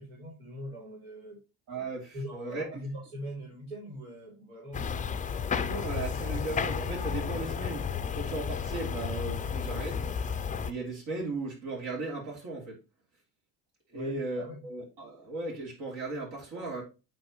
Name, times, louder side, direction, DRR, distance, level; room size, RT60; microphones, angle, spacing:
voice 1, 0.0-1.4 2.1-5.4 7.3-7.5 13.9-14.6, equal, 90° right, 2.8 m, -42 dB
voice 2, 1.7-2.8 5.6-7.8 8.1-10.0 10.6-12.8 13.9-16.8, right 3 dB, 70° right, 3.0 m, -36 dB
sound 1, 4.7-10.7, left 6 dB, 20° left, 0.4 m, -32 dB
9.0 x 3.6 x 3.0 m
supercardioid pair, 75°, 45 cm